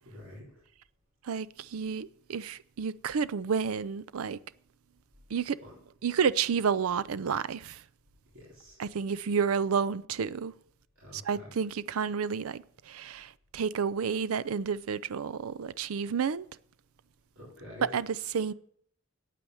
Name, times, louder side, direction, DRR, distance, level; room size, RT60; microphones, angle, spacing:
voice 1, 0.1-0.6 5.6-5.7 8.3-8.8 11.0-11.5 17.4-17.9, left 1 dB, 70° right, 3.8 m, -48 dB
voice 2, 1.2-4.4 5.3-5.6 6.0-7.8 8.8-10.5 11.1-16.5 17.8-18.5, right 6 dB, 90° right, 0.5 m, -30 dB
8.7 x 8.5 x 7.7 m
head